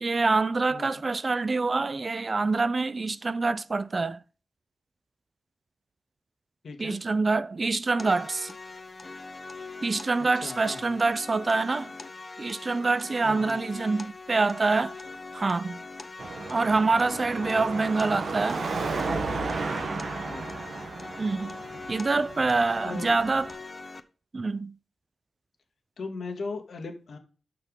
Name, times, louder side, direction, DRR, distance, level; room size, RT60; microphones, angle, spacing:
voice 1, 0.0-4.2 6.8-8.5 9.8-11.9 12.4-15.0 15.3-15.8 16.5-18.6 21.2-21.6 21.9-23.5 24.3-24.8, right 3 dB, 45° right, 0.5 m, -26 dB
voice 2, 0.7-1.0 6.6-7.0 10.3-11.0 13.2-13.6 20.3-20.5 22.8-23.1 26.0-27.2, left 4 dB, 75° left, 2.0 m, -38 dB
sound 1, 8.0-24.0, left 3 dB, 40° left, 0.9 m, -42 dB
Car passing by / Traffic noise roadway noise / Engine, 16.2-23.5, right 3 dB, 70° right, 1.3 m, -34 dB
6.8 x 5.9 x 5.4 m
cardioid pair, 60°, 0 cm